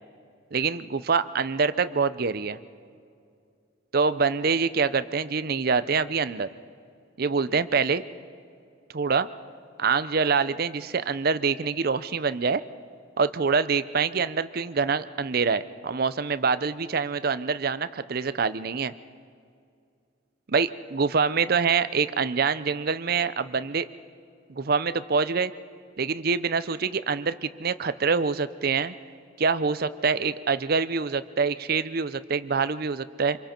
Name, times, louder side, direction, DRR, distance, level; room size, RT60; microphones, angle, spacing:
voice 1, 0.5-2.6 3.9-6.5 7.2-8.0 8.9-9.3 9.8-12.6 13.2-18.9 20.5-23.9 24.6-25.5 26.0-28.9 29.4-33.4, right 5 dB, 50° right, 14 dB, 0.6 m, -25 dB
27.0 x 23.0 x 4.4 m, 2.3 s
head